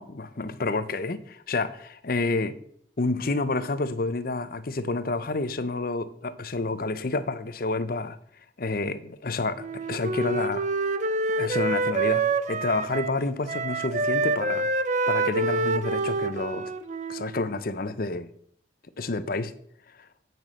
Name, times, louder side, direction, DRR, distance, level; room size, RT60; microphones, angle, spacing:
voice 1, 0.0-2.6 3.0-8.2 8.6-10.6 11.4-14.7 15.1-16.7 17.1-18.3 19.0-19.5, left 3 dB, 55° left, 0.8 m, -29 dB
Wind instrument woodwind instrument, 9.6-13.2 13.5-17.4, right 3 dB, 45° right, 0.6 m, -27 dB
9.4 x 6.1 x 7.5 m
head